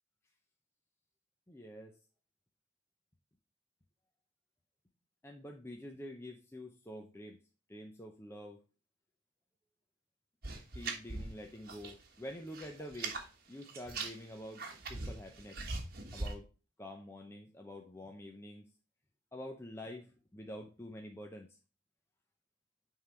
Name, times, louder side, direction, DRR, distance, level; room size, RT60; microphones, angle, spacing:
voice 1, 1.5-2.0 5.2-7.4 7.7-8.6 10.7-13.2 13.5-14.6 14.9-15.6 16.1-16.5 16.8-18.7 19.3-21.5, left 1 dB, 15° left, 2 dB, 0.6 m, -47 dB
sound 1, 10.4-12.0 12.3-13.3 13.6-16.3, right 3 dB, 50° right, 1.4 m, -41 dB
9.3 x 3.8 x 4.3 m, 0.32 s
head